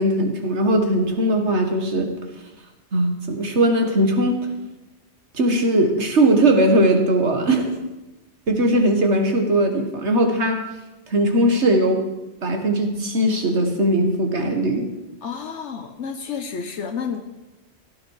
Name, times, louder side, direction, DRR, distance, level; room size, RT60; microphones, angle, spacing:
voice 1, 0.0-2.1 2.9-4.4 5.3-7.8 8.5-10.6 11.1-12.0 12.4-14.9, right 1 dB, 70° right, 4 dB, 2.1 m, -19 dB
voice 2, 15.2-17.2, left 6 dB, 75° left, 6 dB, 1.3 m, -30 dB
17.0 x 12.0 x 4.9 m, 1.0 s
omnidirectional pair, 1.2 m